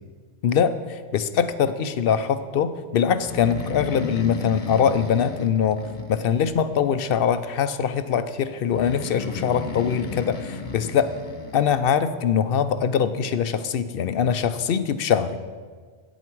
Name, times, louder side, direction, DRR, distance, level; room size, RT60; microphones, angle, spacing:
voice 1, 0.4-11.1 11.5-15.4, left 7 dB, 65° left, 12 dB, 0.7 m, -23 dB
Breathing, 3.2-6.9 8.7-11.8, left 3 dB, 45° left, 1.1 m, -34 dB
11.0 x 9.1 x 4.6 m, 1.6 s
omnidirectional pair, 1.1 m